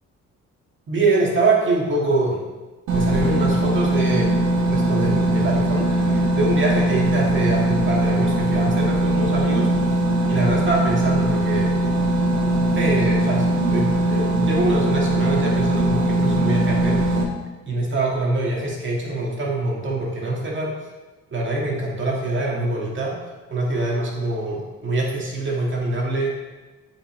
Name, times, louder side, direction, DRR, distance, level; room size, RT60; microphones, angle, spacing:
voice 1, 0.9-2.4 2.9-4.3 4.6-9.7 10.3-11.8 12.7-17.0 17.6-20.7 21.3-23.2 23.5-26.3, right 2 dB, 40° right, -3 dB, 1.9 m, -24 dB
sound 1, 2.9-17.2, right 1 dB, 70° right, 1.2 m, -20 dB
7.7 x 5.0 x 3.2 m, 1.2 s
cardioid pair, 90°, 30 cm